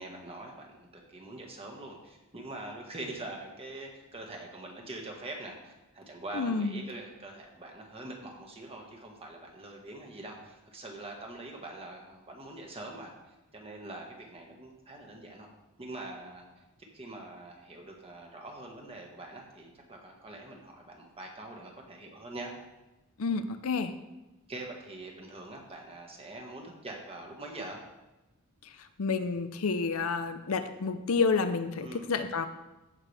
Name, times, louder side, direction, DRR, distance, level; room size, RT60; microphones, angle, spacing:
voice 1, 0.0-15.5 15.8-22.5 24.5-27.8 31.8-32.1, right 2 dB, 25° right, 0 dB, 1.6 m, -44 dB
voice 2, 6.3-6.8 23.2-23.9 29.0-32.5, left 4 dB, 70° left, 10 dB, 0.6 m, -29 dB
15.0 x 5.9 x 3.4 m, 1.0 s
head